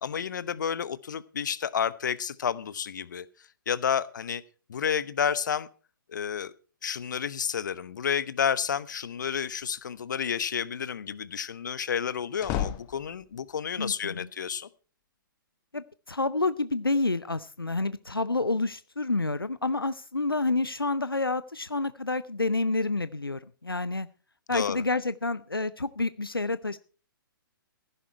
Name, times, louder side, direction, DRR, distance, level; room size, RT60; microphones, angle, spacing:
voice 1, 0.0-3.3 3.7-4.4 4.7-5.7 6.1-6.5 6.8-14.7 24.5-24.8, left 7 dB, 55° left, 18 dB, 0.9 m, -30 dB
sound 1, 9.5-9.8 12.0-13.5, left 11 dB, 25° left, 1.2 m, -34 dB
voice 2, 13.8-14.3 15.7-24.1 24.5-26.8, left 2 dB, 90° left, 15 dB, 0.6 m, -29 dB
15.0 x 11.0 x 4.4 m, 0.38 s
figure-of-eight pair, 125°, 12 cm